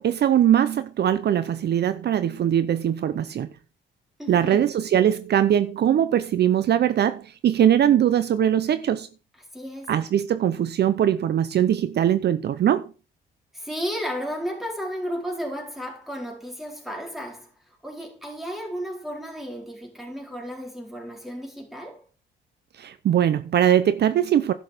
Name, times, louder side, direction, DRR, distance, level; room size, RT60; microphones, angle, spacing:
voice 1, 0.0-3.5 4.3-9.1 9.9-12.9 22.8-24.5, right 10 dB, 55° right, 0.7 m, -21 dB
voice 2, 4.2-4.7 9.4-9.9 13.5-22.1, equal, ahead, 4.2 m, -33 dB
11.0 x 6.3 x 5.0 m
cardioid pair, 90°, 20 cm